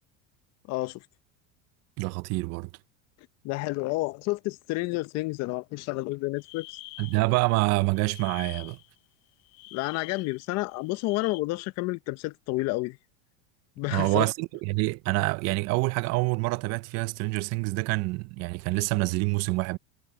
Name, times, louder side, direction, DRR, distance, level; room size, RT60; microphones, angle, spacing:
voice 1, 0.7-1.0 3.4-6.7 9.7-13.0 13.8-14.3, left 21 dB, 45° left, 0.8 m, -30 dB
voice 2, 2.0-2.7 7.0-8.8 13.9-19.8, right 24 dB, 45° right, 0.6 m, -26 dB
sound 1, 6.4-7.5 7.9-9.0 9.4-11.4, left 21 dB, 70° left, 1.0 m, -46 dB
supercardioid pair, 140°, 36 cm